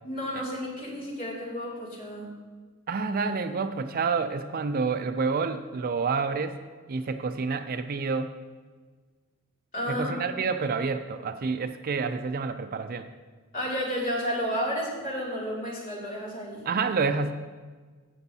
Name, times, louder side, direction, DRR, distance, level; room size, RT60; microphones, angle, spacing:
voice 1, 0.0-2.3 9.7-10.3 13.5-16.7, equal, 40° left, -5 dB, 2.6 m, -32 dB
voice 2, 2.9-6.6 6.9-8.3 9.9-13.1 16.6-17.3, right 4 dB, 45° right, 9 dB, 0.4 m, -28 dB
14.5 x 7.0 x 2.8 m, 1.4 s
head